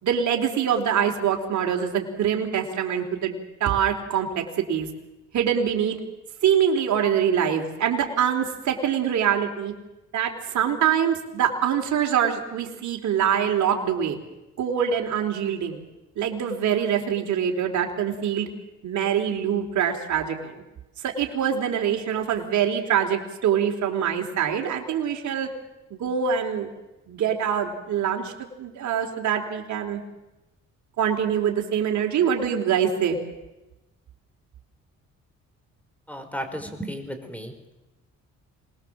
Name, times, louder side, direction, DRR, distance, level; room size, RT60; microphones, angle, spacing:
voice 1, 0.0-4.9 5.3-6.0 6.4-9.7 10.1-14.2 14.6-15.8 16.2-18.5 18.8-20.6 21.0-25.5 25.9-26.7 27.1-30.0 31.0-33.2, right 8 dB, 70° right, 3 dB, 3.7 m, -24 dB
voice 2, 36.1-37.5, equal, 5° left, 7 dB, 4.8 m, -34 dB
26.0 x 20.0 x 7.6 m, 1.0 s
cardioid pair, 90°, 30 cm